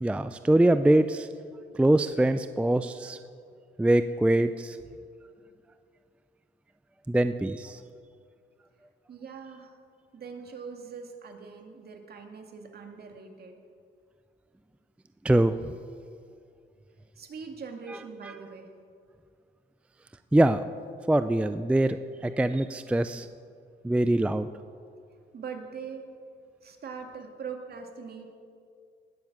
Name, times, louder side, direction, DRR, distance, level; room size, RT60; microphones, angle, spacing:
voice 1, 0.0-1.3 1.7-3.2 3.8-4.8 7.1-7.8 15.2-15.6 20.3-20.6 21.1-22.0 22.2-23.3 23.8-24.5, right 1 dB, 5° right, 11 dB, 0.4 m, -23 dB
voice 2, 9.1-9.8 10.1-13.6 17.2-18.7 25.3-26.0 26.6-28.3, right 5 dB, 55° right, 4 dB, 2.0 m, -42 dB
18.5 x 7.2 x 7.3 m, 2.3 s
cardioid pair, 90°, 20 cm